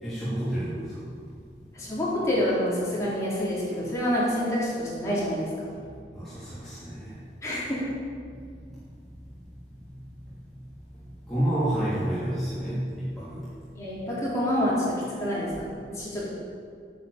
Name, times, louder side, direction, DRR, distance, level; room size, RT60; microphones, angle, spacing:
voice 1, 0.0-0.8 6.1-7.1 11.3-12.9 13.2-13.4, right 1 dB, ahead, -13 dB, 3.0 m, -29 dB
voice 2, 1.7-5.7 7.4-7.8 13.7-14.8 15.2-15.5 15.9-16.3, equal, 20° left, -9 dB, 4.1 m, -27 dB
10.5 x 9.5 x 7.2 m, 2.1 s
head